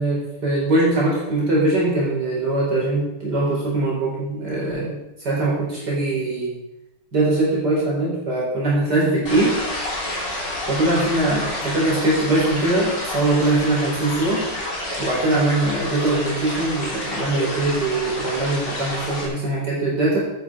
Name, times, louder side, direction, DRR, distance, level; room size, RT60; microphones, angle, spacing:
voice 1, 0.0-6.5 7.1-9.6 10.7-14.5 15.0-20.2, right 2 dB, 50° right, -5 dB, 4.9 m, -21 dB
sound 1, 9.3-19.3, left 1 dB, 55° left, 4.2 m, -29 dB
12.0 x 10.5 x 4.9 m, 0.90 s
omnidirectional pair, 2.3 m